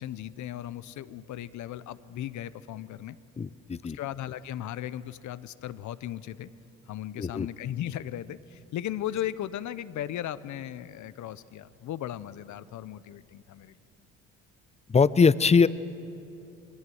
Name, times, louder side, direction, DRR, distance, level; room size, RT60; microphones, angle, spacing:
voice 1, 0.0-3.2 3.8-6.5 6.9-13.8, left 12 dB, 65° left, 16 dB, 0.7 m, -36 dB
voice 2, 3.4-4.0 7.2-7.5 14.9-15.7, left 5 dB, 20° left, 17 dB, 0.5 m, -21 dB
22.5 x 17.0 x 7.8 m, 2.8 s
supercardioid pair, 75°, 32 cm